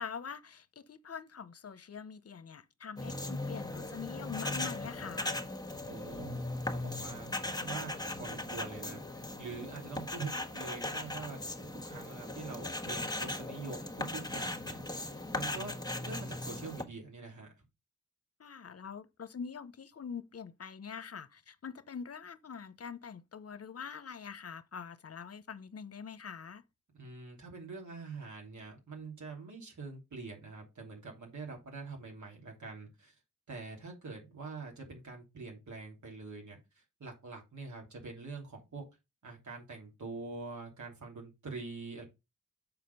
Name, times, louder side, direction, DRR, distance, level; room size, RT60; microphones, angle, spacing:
voice 1, 0.0-5.4 18.4-26.6, left 6 dB, 55° left, 0.8 m, -44 dB
sound 1, 3.0-16.8, left 2 dB, 15° left, 1.4 m, -38 dB
voice 2, 5.8-6.3 6.7-9.0 9.4-11.4 11.8-15.7 16.0-17.6 26.9-33.1 33.5-38.9 39.2-42.0, right 4 dB, 75° right, 2.9 m, -45 dB
7.0 x 4.3 x 5.3 m
cardioid pair, 50°, 29 cm